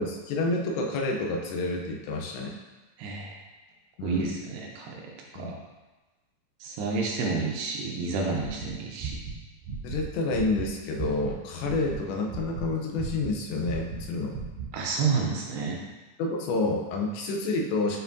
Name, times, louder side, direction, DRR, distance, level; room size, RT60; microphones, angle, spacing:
voice 1, 0.0-2.6 4.0-4.4 5.4-5.6 9.8-14.4 16.2-18.0, left 2 dB, 80° left, 1 dB, 2.9 m, -29 dB
voice 2, 3.0-3.3 4.0-5.0 5.4-5.5 6.6-9.2 14.7-15.8, right 4 dB, 80° right, -1 dB, 2.7 m, -30 dB
sound 1, 8.4-11.3 11.6-14.1 14.3-14.7, right 5 dB, 50° right, 3.3 m, -36 dB
8.6 x 4.6 x 2.6 m, 1.1 s
omnidirectional pair, 5.2 m